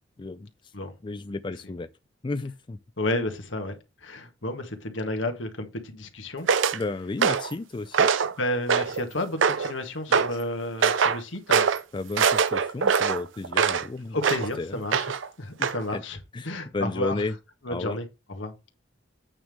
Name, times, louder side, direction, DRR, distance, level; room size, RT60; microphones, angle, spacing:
voice 1, 0.2-0.5 1.0-1.9 2.2-2.8 6.7-8.1 10.1-10.2 11.9-14.2 14.6-14.8 15.6-16.0 16.3-17.3 17.7-18.0, left 3 dB, 25° left, 0.4 m, -33 dB
voice 2, 3.0-3.8 4.0-6.5 8.4-11.7 14.1-15.0 15.4-16.2 16.4-17.2 17.6-18.0 18.3-18.5, left 1 dB, 80° left, 1.7 m, -31 dB
sound 1, 6.5-6.8 7.2-7.5 7.9-8.3 8.7-9.0 9.4-9.7 10.1-10.3 10.8-11.2 11.5-11.8 12.2-13.9 14.2-14.5 14.9-15.3 15.6-15.8, right 6 dB, 90° right, 0.6 m, -22 dB
8.8 x 3.6 x 6.3 m
head